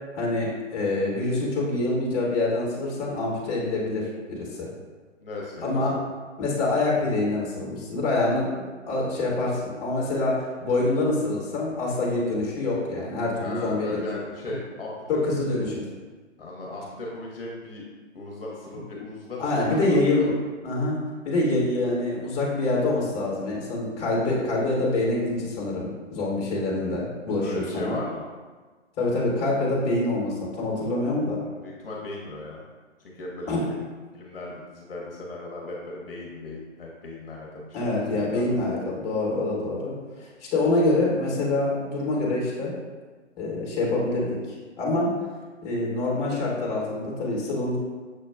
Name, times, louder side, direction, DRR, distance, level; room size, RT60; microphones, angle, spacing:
voice 1, 0.1-4.7 5.6-5.9 6.4-14.0 15.1-15.7 19.4-20.3 20.6-21.0 21.2-28.0 29.0-31.4 33.5-33.6 37.7-39.9 40.2-42.7 43.4-45.1 45.6-47.8, left 2 dB, 15° left, -4 dB, 0.9 m, -26 dB
voice 2, 5.2-6.1 8.0-8.2 11.9-12.1 13.3-15.6 16.4-17.9 18.1-20.3 27.4-28.2 31.6-32.6 33.0-33.8 34.1-38.6, left 2 dB, 50° left, -2 dB, 0.7 m, -37 dB
6.4 x 2.2 x 2.3 m, 1.4 s
figure-of-eight pair, 135°, 37 cm